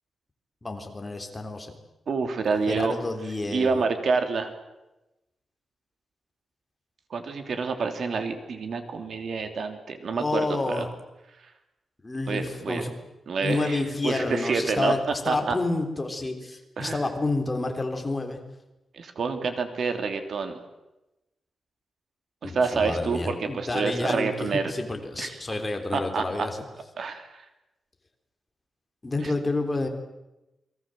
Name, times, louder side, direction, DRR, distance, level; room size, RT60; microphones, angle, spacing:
voice 1, 0.6-1.7 2.7-3.8 10.1-10.9 12.0-12.9 13.4-18.4 22.4-26.6 29.0-29.9, left 2 dB, 20° left, 4 dB, 3.6 m, -29 dB
voice 2, 2.1-3.0 3.5-4.5 7.1-10.9 12.3-12.8 13.3-15.6 16.8-17.0 18.9-20.6 22.4-24.7 25.2-25.4 25.9-26.5 27.0-27.4 29.2-29.3, right 4 dB, 60° right, 7 dB, 3.4 m, -28 dB
29.0 x 22.5 x 7.8 m, 0.95 s
wide cardioid pair, 145°, 0 cm